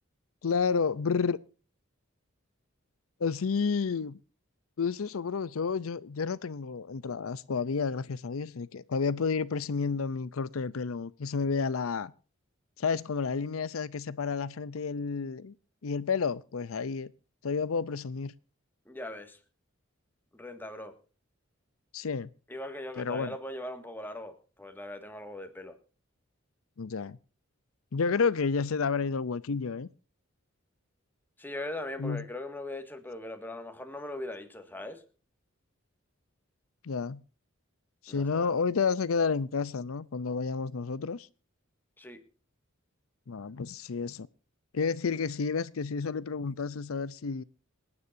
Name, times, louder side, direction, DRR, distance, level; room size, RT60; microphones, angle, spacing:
voice 1, 0.4-1.4 3.2-4.2 4.8-12.1 12.8-15.5 15.8-17.1 17.4-18.3 21.9-22.3 23.0-23.3 26.8-27.2 27.9-29.9 32.0-32.2 36.8-37.2 38.0-41.3 43.3-44.3 44.7-47.4, left 5 dB, 85° left, 0.6 m, -30 dB
voice 2, 18.9-19.4 20.3-21.0 22.5-25.8 31.4-35.0 38.1-38.5 42.0-42.2, left 1 dB, 10° left, 1.8 m, -40 dB
27.0 x 9.6 x 2.6 m
head